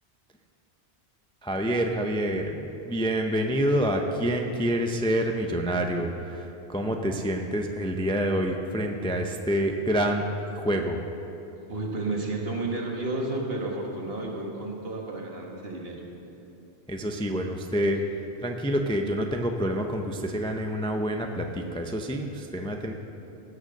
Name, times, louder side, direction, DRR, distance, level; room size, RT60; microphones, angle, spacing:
voice 1, 1.4-10.2 10.5-11.0 16.9-18.0 18.4-22.9, equal, 5° left, 3 dB, 0.5 m, -27 dB
voice 2, 11.7-16.1, right 2 dB, 60° right, -1 dB, 1.9 m, -31 dB
16.0 x 6.5 x 6.5 m, 2.8 s
omnidirectional pair, 1.1 m